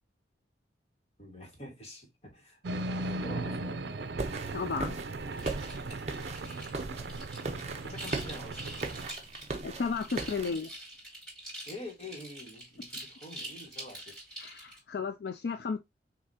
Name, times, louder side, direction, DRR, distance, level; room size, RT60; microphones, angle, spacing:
voice 1, 1.2-4.1 4.5-4.6 7.4-8.8 11.7-14.2, left 1 dB, 35° left, 1.7 m, -47 dB
sound 1, 2.6-9.1, right 2 dB, 75° right, 0.5 m, -38 dB
sound 2, 4.2-10.5, right 3 dB, 35° right, 0.7 m, -39 dB
voice 2, 4.5-5.0 9.6-10.7 14.4-15.8, left 5 dB, 65° left, 0.4 m, -33 dB
sound 3, 5.3-14.8, right 1 dB, 5° left, 3.0 m, -45 dB
6.5 x 2.8 x 2.8 m
head